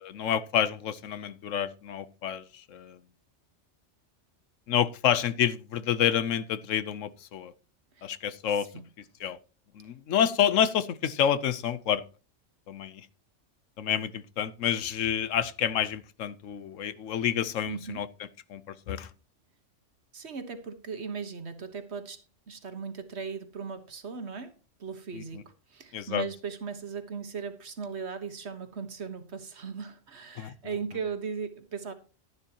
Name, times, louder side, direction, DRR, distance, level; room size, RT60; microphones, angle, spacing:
voice 1, 0.0-3.0 4.7-7.5 8.0-8.8 9.2-9.4 9.7-12.0 12.7-13.1 13.8-18.1 18.5-19.1 25.1-25.4 25.9-26.2 30.4-30.5, left 9 dB, 85° left, 1.1 m, -28 dB
voice 2, 17.7-18.0 20.1-22.2 22.5-24.5 24.8-31.9, right 5 dB, 60° right, 1.6 m, -38 dB
12.0 x 11.0 x 2.9 m
omnidirectional pair, 1.3 m